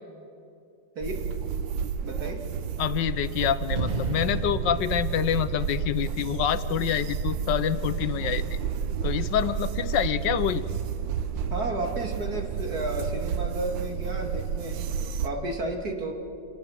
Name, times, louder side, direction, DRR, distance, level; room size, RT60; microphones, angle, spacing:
sound 1, 1.0-15.3, right 7 dB, 90° right, 1.5 m, -31 dB
voice 1, 2.0-2.4 11.5-14.8 15.2-16.1, right 1 dB, 55° right, 2 dB, 2.9 m, -32 dB
voice 2, 2.8-8.6 9.0-10.6, left 10 dB, 75° left, 13 dB, 1.4 m, -27 dB
sound 2, 3.8-7.0, right 3 dB, 30° right, 1.1 m, -34 dB
28.0 x 19.5 x 7.4 m, 2.5 s
omnidirectional pair, 2.0 m